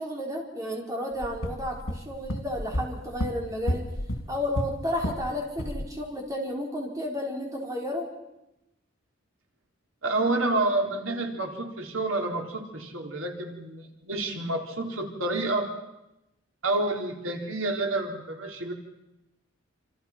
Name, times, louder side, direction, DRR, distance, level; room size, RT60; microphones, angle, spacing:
voice 1, 0.0-3.9 4.3-8.1, left 1 dB, 15° right, 0 dB, 4.6 m, -32 dB
sound 1, 1.2-5.3 5.6-5.9, equal, 90° left, 3.2 m, -32 dB
voice 2, 10.0-15.7 16.6-18.7, right 2 dB, 85° right, 2 dB, 4.0 m, -29 dB
28.0 x 27.5 x 5.9 m, 0.92 s
head